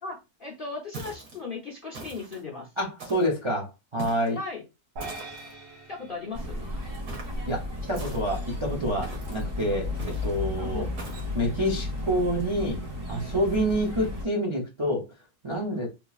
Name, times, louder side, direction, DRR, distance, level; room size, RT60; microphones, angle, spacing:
voice 1, 0.0-2.7 4.4-4.6 5.9-6.7 10.6-10.9 13.5-13.6, left 4 dB, 45° left, 0.7 m, -37 dB
sound 1, 0.9-1.4 1.9-2.4 3.0-3.4 4.0-4.4 5.0-5.5 7.1-7.4 7.9-8.5 9.0-9.4 10.0-10.4 11.0-11.3, right 3 dB, 65° right, 1.7 m, -41 dB
voice 2, 2.8-4.4 7.4-10.9 11.3-12.8 13.1-15.0 15.4-15.9, equal, 35° right, 0.4 m, -28 dB
sound 2, 5.0-7.4, right 2 dB, 85° right, 1.7 m, -43 dB
sound 3, 6.3-14.3, left 2 dB, 50° right, 1.5 m, -34 dB
3.7 x 2.9 x 2.4 m
omnidirectional pair, 1.8 m